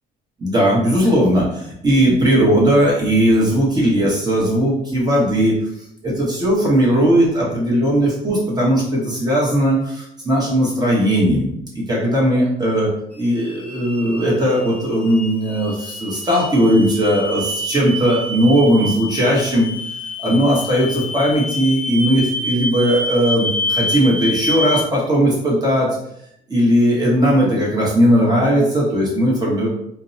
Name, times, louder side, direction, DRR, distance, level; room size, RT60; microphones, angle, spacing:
voice 1, 0.4-5.5 6.0-12.9 13.2-19.7 20.2-25.9 26.5-29.7, equal, 25° right, -4 dB, 1.0 m, -17 dB
sound 1, 13.1-24.8, left 1 dB, 10° left, 0.4 m, -27 dB
2.6 x 2.0 x 2.6 m, 0.74 s
cardioid pair, 110°, 17 cm